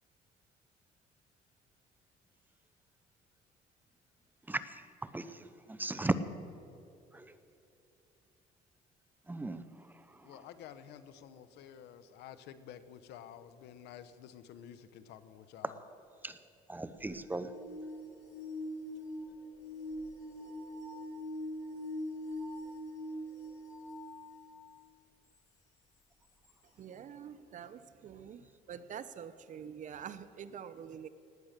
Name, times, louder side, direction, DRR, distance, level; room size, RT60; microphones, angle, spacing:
voice 1, 5.1-6.2 7.1-7.3 9.3-9.6 16.2-16.4 16.7-17.5, right 2 dB, 10° right, 12 dB, 0.7 m, -36 dB
voice 2, 10.2-15.8, left 9 dB, 85° left, 13 dB, 0.9 m, -51 dB
sound 1, 17.0-24.6 25.3-25.4 26.4-26.5, left 1 dB, 45° left, 4.3 m, -43 dB
voice 3, 26.8-31.1, right 8 dB, 50° right, 14 dB, 0.7 m, -46 dB
19.0 x 8.8 x 6.6 m, 2.8 s
cardioid pair, 110°, 17 cm